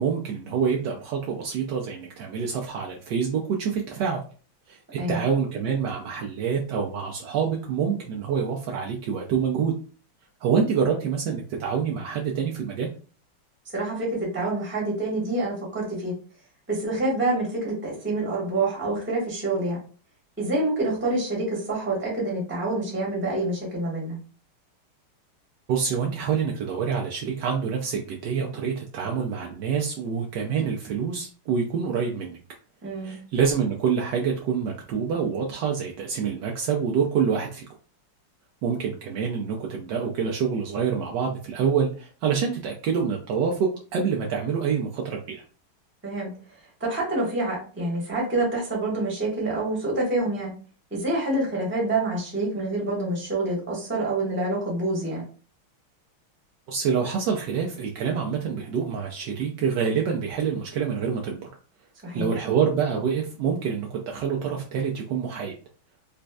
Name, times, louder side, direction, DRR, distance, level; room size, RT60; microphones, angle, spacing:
voice 1, 0.0-4.2 4.7-4.8 5.1-9.7 10.4-12.9 25.7-32.4 33.0-37.6 38.6-45.4 56.7-61.5 62.1-65.5, right 6 dB, 85° right, 0 dB, 0.9 m, -26 dB
voice 2, 13.7-16.1 16.7-19.8 20.4-24.2 32.8-33.1 46.0-46.3 46.8-50.5 50.9-55.2 62.0-62.3, right 2 dB, 10° right, -3 dB, 0.8 m, -27 dB
4.1 x 2.5 x 2.3 m, 0.39 s
omnidirectional pair, 2.4 m